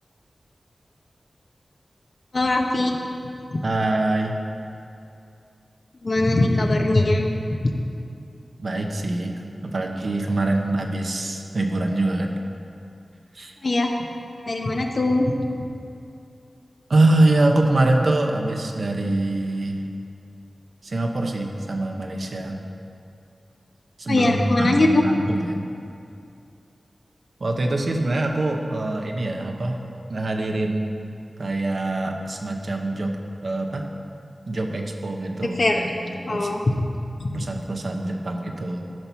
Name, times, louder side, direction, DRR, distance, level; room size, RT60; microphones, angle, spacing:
voice 1, 2.3-3.0 3.5-3.6 6.0-7.3 7.6-7.7 13.6-13.9 14.5-15.3 24.1-25.0 35.6-35.8 36.3-36.6 37.2-37.4, left 2 dB, 60° left, 2 dB, 1.0 m, -20 dB
voice 2, 3.6-4.4 8.6-12.4 13.3-13.5 16.9-19.8 20.8-22.6 24.0-25.7 27.4-29.8 30.1-31.0 31.4-33.2 33.4-33.9 34.5-36.5 37.3-38.9, right 2 dB, 70° right, 2 dB, 0.9 m, -24 dB
12.5 x 4.5 x 5.7 m, 2.5 s
cardioid pair, 40°, 0 cm